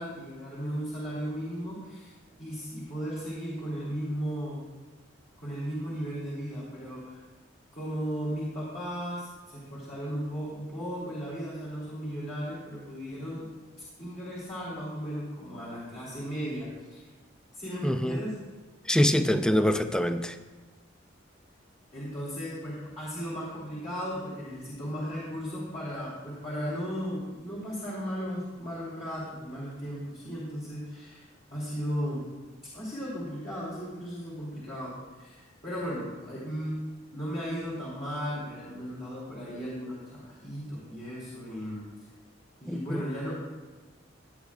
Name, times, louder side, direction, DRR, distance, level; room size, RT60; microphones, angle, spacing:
voice 1, 0.0-2.1 2.4-4.6 5.4-7.2 7.7-13.5 14.0-17.0 17.5-18.3 21.9-31.2 31.5-32.3 32.7-36.8 37.1-41.8 42.6-43.4, equal, 40° left, -9 dB, 3.0 m, -36 dB
voice 2, 17.8-18.2 18.9-20.4 42.7-43.1, equal, 5° left, 9 dB, 0.4 m, -25 dB
16.5 x 8.7 x 2.4 m, 1.3 s
head